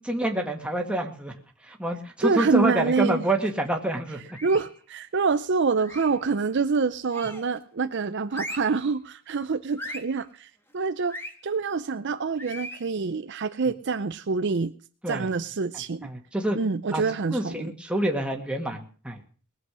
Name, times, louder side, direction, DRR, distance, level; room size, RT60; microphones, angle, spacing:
voice 1, 0.0-1.3 1.6-4.2 15.0-15.3 16.0-16.6 16.9-17.0 17.3-19.2, right 1 dB, 5° right, 2 dB, 1.9 m, -27 dB
voice 2, 2.2-3.2 4.4-11.2 11.4-14.7 15.1-16.1 16.5-17.7, right 4 dB, 55° right, 11 dB, 0.6 m, -26 dB
sound 1, 4.3-4.8 5.8-6.2 7.1-7.6 8.3-8.8 9.8-10.2 11.1-11.4 12.4-12.9, equal, 10° left, 1.5 m, -38 dB
20.0 x 7.8 x 6.4 m, 0.43 s
head